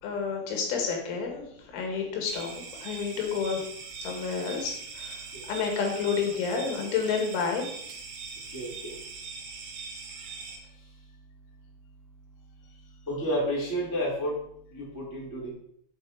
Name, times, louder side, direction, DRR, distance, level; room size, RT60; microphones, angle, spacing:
voice 1, 0.0-3.6 4.0-5.2 5.4-7.7, left 6 dB, 80° left, 2 dB, 3.8 m, -30 dB
sound 1, 2.2-10.6, right 5 dB, 80° right, 3.8 m, -41 dB
voice 2, 8.5-8.9 13.1-14.4 14.7-15.5, equal, 10° left, -6 dB, 0.9 m, -31 dB
9.4 x 4.3 x 4.5 m, 0.69 s
omnidirectional pair, 5.6 m